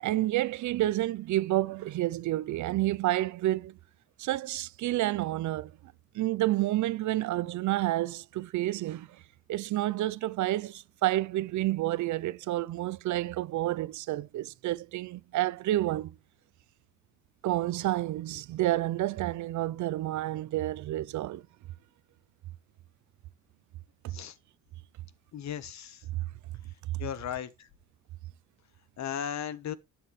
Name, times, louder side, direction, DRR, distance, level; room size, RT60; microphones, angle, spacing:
voice 1, 0.0-3.8 4.2-5.7 6.1-9.1 9.5-16.2 17.4-21.4, right 15 dB, 75° right, 0.6 m, -29 dB
voice 2, 25.3-26.0 27.0-27.7 29.0-29.7, left 9 dB, 65° left, 1.3 m, -36 dB
12.0 x 7.9 x 3.3 m
cardioid pair, 90°, 30 cm